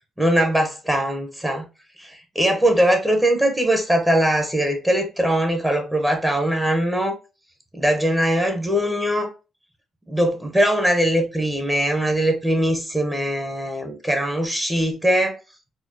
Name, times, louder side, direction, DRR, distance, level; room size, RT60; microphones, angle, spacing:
voice 1, 0.2-1.7 2.0-7.2 7.7-9.3 10.1-15.4, right 1 dB, 10° right, 0.9 m, -21 dB
4.2 x 2.3 x 2.8 m
cardioid pair, 90°, 0 cm